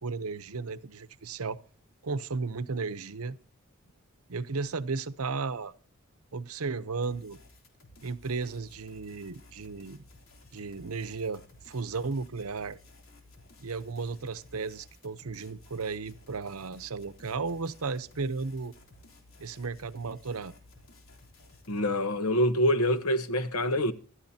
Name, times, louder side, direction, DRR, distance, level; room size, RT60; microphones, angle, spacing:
voice 1, 0.0-1.6 2.0-3.4 4.3-5.7 6.3-7.4 8.0-10.0 10.5-12.8 13.6-18.7 19.4-20.5, right 4 dB, 85° right, 0.8 m, -34 dB
sound 1, 7.0-21.8, left 2 dB, 65° left, 3.5 m, -56 dB
voice 2, 21.7-23.9, equal, 90° left, 1.2 m, -26 dB
25.5 x 12.5 x 2.8 m
head